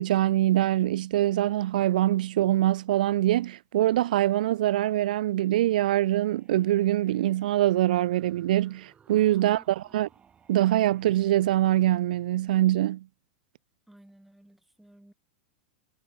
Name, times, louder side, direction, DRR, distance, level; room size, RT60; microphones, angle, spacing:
voice 1, 0.0-9.6 9.9-10.1 10.5-13.0, right 14 dB, 65° right, 0.3 m, -24 dB
sound 1, 5.8-11.7, right 7 dB, 25° right, 3.0 m, -60 dB
voice 2, 9.4-10.0 13.9-15.1, right 1 dB, 5° right, 5.0 m, -56 dB
figure-of-eight pair, 95°, 5 cm